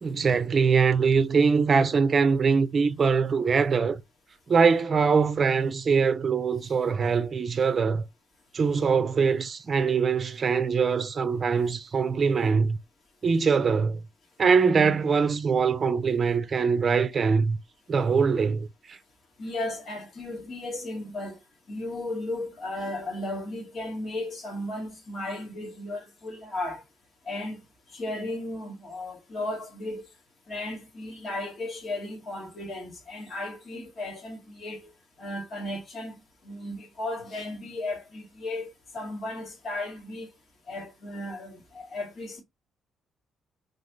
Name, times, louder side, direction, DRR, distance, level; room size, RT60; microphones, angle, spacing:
voice 1, 0.0-4.0 4.5-8.0 8.5-12.8 13.2-14.0 14.4-17.6 17.9-19.0, right 5 dB, 40° right, 0.6 m, -23 dB
voice 2, 19.4-21.4 21.7-26.8 27.3-27.6 27.9-30.1 30.5-34.9 35.2-40.3 40.7-42.4, left 2 dB, 50° left, 2.2 m, -35 dB
3.9 x 3.4 x 2.7 m
cardioid pair, 90°, 0 cm